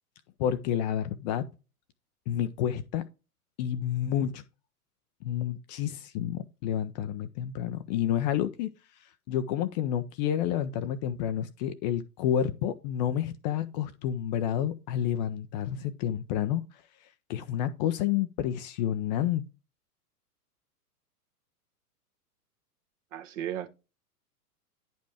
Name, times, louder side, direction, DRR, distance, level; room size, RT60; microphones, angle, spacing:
voice 1, 0.4-1.4 2.3-3.0 3.6-4.4 5.2-8.7 9.3-16.6 17.3-19.4, left 10 dB, 30° left, 0.5 m, -29 dB
voice 2, 23.1-23.7, right 11 dB, 50° right, 1.4 m, -35 dB
10.0 x 5.3 x 3.4 m
hypercardioid pair, 110°, 47 cm